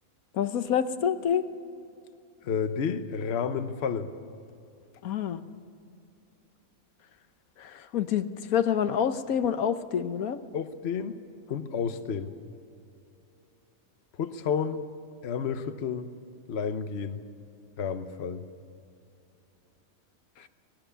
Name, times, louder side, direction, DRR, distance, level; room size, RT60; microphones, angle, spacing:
voice 1, 0.3-1.4 5.0-5.4 7.6-10.4 20.4-20.5, left 8 dB, 85° left, 11 dB, 1.4 m, -27 dB
voice 2, 2.4-4.1 10.5-11.2 11.5-12.3 14.2-14.9 15.2-16.1 16.5-17.2 17.8-18.4, left 6 dB, 55° left, 10 dB, 1.1 m, -31 dB
25.0 x 19.0 x 6.9 m, 2.6 s
omnidirectional pair, 1.5 m